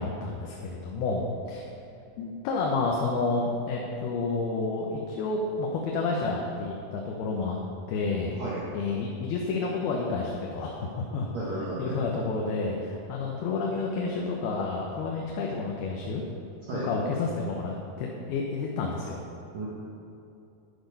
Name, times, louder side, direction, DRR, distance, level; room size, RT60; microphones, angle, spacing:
voice 1, 0.0-1.6 2.2-7.6 7.9-8.4 8.7-11.3 11.8-16.2 16.7-19.2, left 3 dB, 90° left, -1 dB, 3.0 m, -30 dB
voice 2, 11.3-12.0 16.7-16.9 19.5-19.7, right 2 dB, 50° right, -8 dB, 2.6 m, -33 dB
10.5 x 10.5 x 5.4 m, 2.7 s
omnidirectional pair, 4.3 m